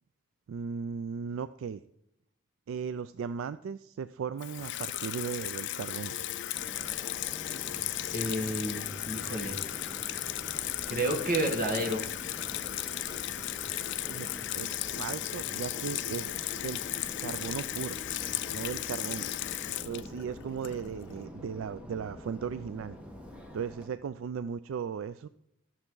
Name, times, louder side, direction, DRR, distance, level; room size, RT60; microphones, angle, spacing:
voice 1, 0.5-1.8 2.7-6.2 14.1-16.8 17.2-18.0 18.5-19.3 19.8-23.0 23.5-25.3, right 6 dB, 70° right, 14 dB, 0.3 m, -37 dB
Water tap faucet / Sink (filling or washing), 4.4-21.1, left 13 dB, 60° left, 0.4 m, -35 dB
Subway metro underground, 6.5-23.9, equal, 5° right, 1.2 m, -46 dB
voice 2, 8.1-9.6 10.9-12.0, right 1 dB, 45° right, 2 dB, 1.5 m, -30 dB
12.0 x 7.0 x 3.8 m, 0.80 s
head